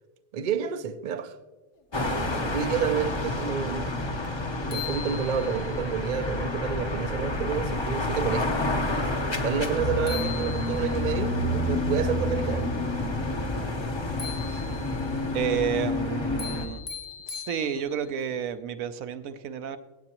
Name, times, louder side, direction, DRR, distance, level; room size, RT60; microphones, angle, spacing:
voice 1, 0.3-1.4 2.5-3.9 4.7-8.6 9.4-12.7 14.5-14.6 15.5-15.6, right 7 dB, 55° right, 0.5 m, -29 dB
sound 1, 1.9-16.7, left 2 dB, 25° left, 0.7 m, -29 dB
sound 2, 4.2-4.3 4.7-5.8 9.7-9.8 10.1-11.1 14.2-15.1 16.4-18.1, left 8 dB, 60° left, 1.3 m, -39 dB
voice 2, 15.3-16.8 17.3-19.8, right 8 dB, 80° right, 1.0 m, -30 dB
15.5 x 8.7 x 2.9 m
omnidirectional pair, 1.4 m